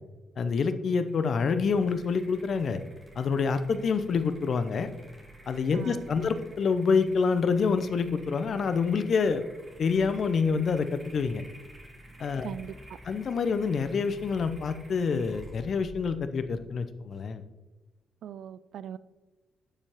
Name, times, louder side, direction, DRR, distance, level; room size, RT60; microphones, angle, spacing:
voice 1, 0.4-2.8 3.2-4.9 5.5-9.4 9.8-11.4 12.2-12.5 13.1-17.4, left 5 dB, 55° left, 11 dB, 0.7 m, -27 dB
sound 1, 0.9-17.3, right 1 dB, 30° right, 3.1 m, -51 dB
voice 2, 5.7-6.1 12.4-12.7 18.2-19.0, right 9 dB, 65° right, 16 dB, 0.3 m, -40 dB
11.5 x 7.1 x 3.0 m, 1.2 s
hypercardioid pair, 40°, 0 cm